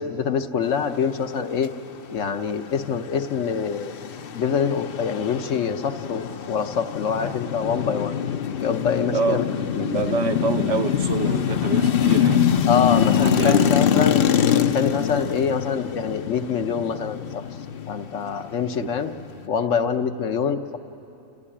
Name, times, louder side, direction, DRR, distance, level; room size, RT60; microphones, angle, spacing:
voice 1, 0.0-1.7 2.1-3.9 4.3-8.1 8.6-9.4 9.7-9.8 12.7-14.2 14.7-17.4 17.9-19.1 19.5-20.8, left 6 dB, 70° left, 7 dB, 1.2 m, -25 dB
sound 1, 2.7-19.5, left 9 dB, 55° left, 0.7 m, -24 dB
voice 2, 9.1-14.1 18.8-18.9, right 4 dB, 65° right, 6 dB, 1.3 m, -27 dB
28.0 x 15.0 x 9.9 m, 2.9 s
omnidirectional pair, 1.4 m